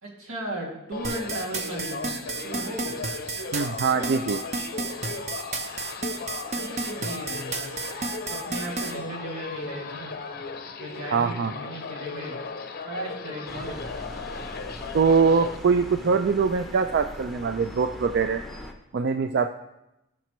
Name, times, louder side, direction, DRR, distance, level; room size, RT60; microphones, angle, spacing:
voice 1, 0.0-3.0 6.5-7.7 8.3-10.1 10.8-12.4 12.8-13.9, right 1 dB, 80° right, -2 dB, 2.3 m, -36 dB
sound 1, 0.9-15.6, left 4 dB, 45° left, 0.6 m, -37 dB
sound 2, 1.0-8.9, right 4 dB, 30° right, 0.8 m, -31 dB
voice 2, 3.5-4.4 11.1-11.5 14.9-18.4 18.9-19.5, right 5 dB, 50° right, 8 dB, 0.3 m, -23 dB
traffic-train, 13.5-18.7, left 1 dB, ahead, 0.7 m, -40 dB
16.5 x 6.0 x 3.1 m, 0.91 s
head